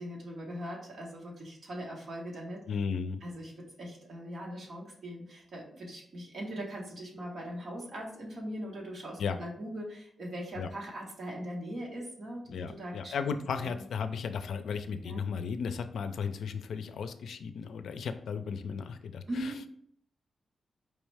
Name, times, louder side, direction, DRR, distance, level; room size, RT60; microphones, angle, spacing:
voice 1, 0.0-2.6 3.2-13.1 13.6-13.8 15.0-15.2 19.3-19.7, equal, 45° right, -2 dB, 1.4 m, -40 dB
voice 2, 2.7-3.2 9.2-9.4 10.6-10.7 12.5-19.5, left 6 dB, 80° left, 9 dB, 0.4 m, -35 dB
4.9 x 3.1 x 3.4 m, 0.66 s
wide cardioid pair, 175°, 0 cm